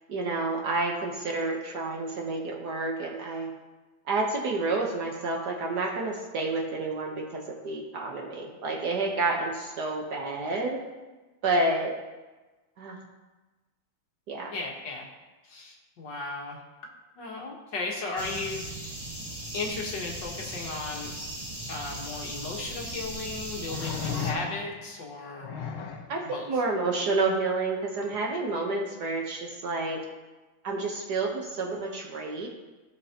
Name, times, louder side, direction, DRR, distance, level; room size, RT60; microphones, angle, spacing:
voice 1, 0.1-3.5 4.1-10.8 11.4-12.0 12.8-13.0 14.3-14.5 26.1-30.0 30.6-32.5, right 3 dB, 60° right, 0 dB, 1.5 m, -29 dB
voice 2, 14.5-15.1 15.4-16.6 17.2-18.6 19.5-21.1 21.7-25.5 26.2-26.5, left 3 dB, 60° left, -1 dB, 2.0 m, -35 dB
sound 1, 18.2-24.3, right 1 dB, 15° right, 1.2 m, -38 dB
sound 2, 22.3-22.4 23.7-24.9 25.4-26.1 28.0-28.1, left 6 dB, 85° left, 1.8 m, -34 dB
15.5 x 6.6 x 2.9 m, 1.2 s
omnidirectional pair, 2.2 m